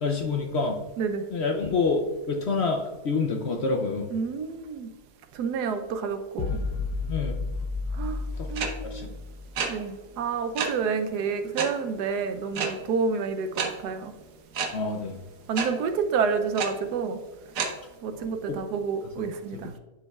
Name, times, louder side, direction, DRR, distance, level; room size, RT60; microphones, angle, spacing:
voice 1, 0.0-0.8 1.3-2.0 2.3-4.1 7.1-7.3 8.4-9.1 14.7-15.2 18.1-18.6 19.2-19.3, left 4 dB, 65° left, 3 dB, 0.7 m, -28 dB
voice 2, 4.1-4.9 5.3-6.6 7.9-8.2 8.5-9.0 9.7-14.1 15.5-17.2 18.0-19.7, right 5 dB, 90° right, 8 dB, 1.3 m, -29 dB
sound 1, 6.4-9.8, left 3 dB, 90° left, 1.2 m, -32 dB
sound 2, 8.6-8.7 9.6-9.7 10.6-10.7 11.6-11.7 12.5-12.7 13.6-13.7 14.5-14.7 15.6-15.7 16.6-16.7 17.6-17.7, right 6 dB, 60° right, 1.3 m, -27 dB
9.6 x 5.3 x 2.3 m, 1.2 s
omnidirectional pair, 1.7 m